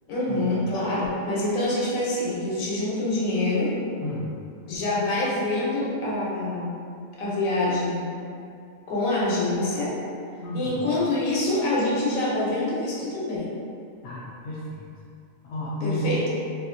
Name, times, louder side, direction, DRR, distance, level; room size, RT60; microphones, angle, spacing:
voice 1, 0.1-3.8 4.7-6.8 7.2-8.2 8.9-9.9 10.5-13.5 15.8-16.3, left 2 dB, 85° left, -6 dB, 1.2 m, -26 dB
voice 2, 10.4-10.9 14.0-14.9 15.4-16.2, equal, 70° left, -7 dB, 0.9 m, -31 dB
4.1 x 2.4 x 2.5 m, 2.5 s
omnidirectional pair, 1.4 m